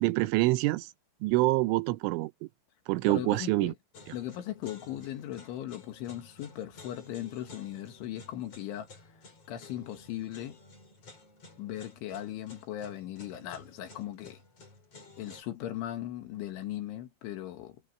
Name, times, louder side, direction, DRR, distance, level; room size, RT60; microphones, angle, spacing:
voice 1, 0.0-0.9 1.2-2.3 2.9-3.7, right 21 dB, 80° right, 3.0 m, -26 dB
voice 2, 3.1-3.8 4.1-8.9 9.5-10.6 11.6-14.4 15.2-17.8, left 12 dB, 75° left, 4.2 m, -38 dB
sound 1, 3.9-15.4, left 3 dB, 30° left, 5.6 m, -53 dB
omnidirectional pair, 5.7 m